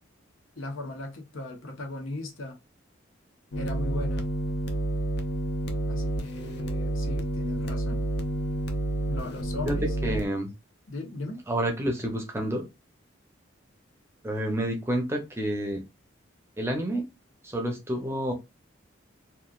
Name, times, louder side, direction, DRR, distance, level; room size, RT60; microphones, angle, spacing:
voice 1, 0.6-2.6 3.6-4.2 5.9-8.0 9.1-10.1 10.9-11.4, left 2 dB, 85° left, 0.9 m, -37 dB
sound 1, 3.5-10.3, right 1 dB, 55° left, 0.5 m, -29 dB
voice 2, 10.0-10.5 11.5-12.6 14.2-15.8 16.6-17.0 17.5-18.3, right 1 dB, 15° right, 0.6 m, -29 dB
3.0 x 2.4 x 2.3 m
head